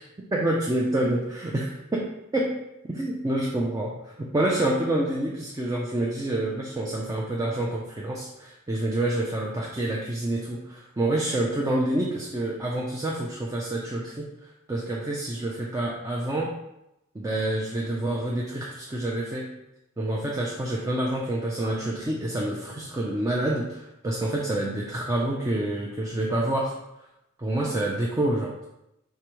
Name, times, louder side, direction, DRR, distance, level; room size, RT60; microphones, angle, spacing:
voice 1, 0.3-2.1 2.3-2.5 2.9-14.3 14.7-16.5 17.1-19.5 20.0-26.8 27.4-28.6, right 1 dB, 15° right, -3 dB, 0.4 m, -27 dB
4.9 x 3.3 x 3.0 m, 0.88 s
head